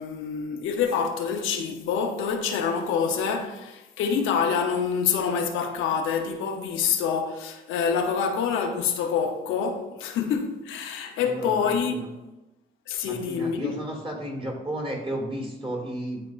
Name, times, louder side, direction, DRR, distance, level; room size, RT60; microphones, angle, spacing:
voice 1, 0.0-12.1 12.9-13.8, left 6 dB, 85° left, 0.8 m, -26 dB
voice 2, 11.2-12.1 13.0-16.2, right 1 dB, 25° right, 2.0 m, -33 dB
10.5 x 4.2 x 2.5 m
cardioid pair, 90°, 20 cm